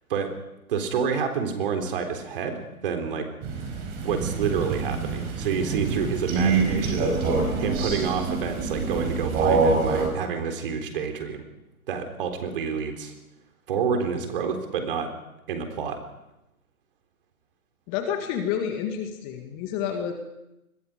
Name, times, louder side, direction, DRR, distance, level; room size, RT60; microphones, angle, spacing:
voice 1, 0.7-3.3 4.0-7.2 7.6-11.4 11.9-13.1 13.7-15.1 15.5-16.0, right 6 dB, 40° right, 5 dB, 3.8 m, -28 dB
Crow, 3.4-10.1, right 4 dB, 20° right, 5.2 m, -25 dB
voice 2, 17.9-20.1, left 8 dB, 20° left, 5 dB, 1.9 m, -29 dB
27.5 x 22.0 x 5.1 m, 0.91 s
figure-of-eight pair, 140°, 43 cm